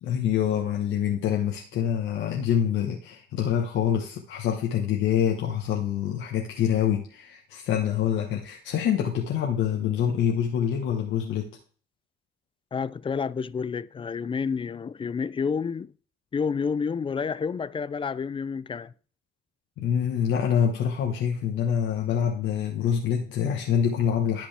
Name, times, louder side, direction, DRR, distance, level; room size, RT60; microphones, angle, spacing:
voice 1, 0.0-11.5 19.8-24.5, left 9 dB, 85° left, 1.4 m, -26 dB
voice 2, 12.7-15.9 16.3-18.9, left 6 dB, 25° left, 0.4 m, -29 dB
13.5 x 5.2 x 3.4 m
cardioid pair, 90°, 20 cm